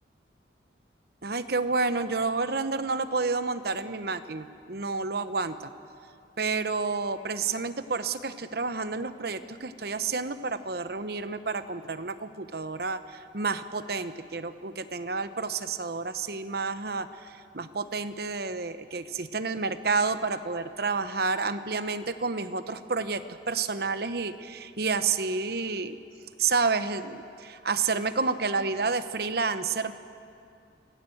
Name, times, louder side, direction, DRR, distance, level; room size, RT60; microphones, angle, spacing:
voice 1, 1.2-5.7 6.4-26.0 26.4-29.9, right 4 dB, 55° right, 11 dB, 0.9 m, -30 dB
26.0 x 17.0 x 7.8 m, 2.5 s
head